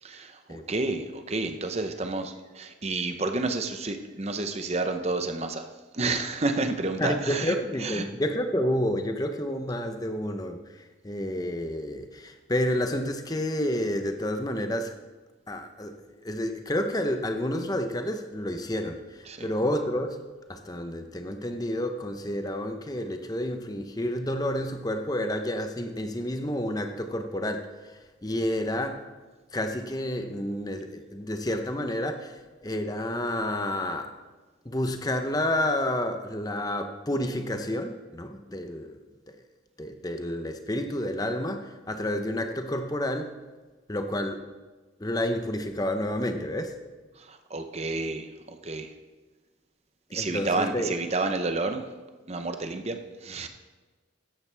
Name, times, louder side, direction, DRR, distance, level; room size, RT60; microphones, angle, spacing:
voice 1, 0.0-8.1 19.3-19.5 47.2-48.9 50.1-51.8 52.3-53.5, right 3 dB, 35° right, 7 dB, 0.8 m, -30 dB
voice 2, 7.0-14.9 15.5-20.2 20.5-29.1 29.5-34.1 34.6-39.0 39.3-39.4 39.8-43.3 43.9-44.5 45.0-46.8 50.1-50.9, left 1 dB, 20° left, 6 dB, 0.8 m, -30 dB
14.5 x 10.5 x 3.4 m, 1.3 s
head